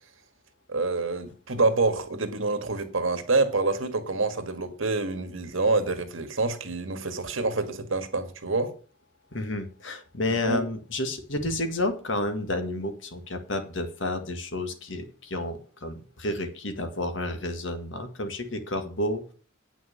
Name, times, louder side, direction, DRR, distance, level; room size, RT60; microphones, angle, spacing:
voice 1, 0.7-8.7 10.5-10.6, right 3 dB, 80° right, 1.7 m, -27 dB
voice 2, 9.3-19.3, left 1 dB, 70° left, 1.9 m, -31 dB
9.1 x 6.2 x 8.4 m
head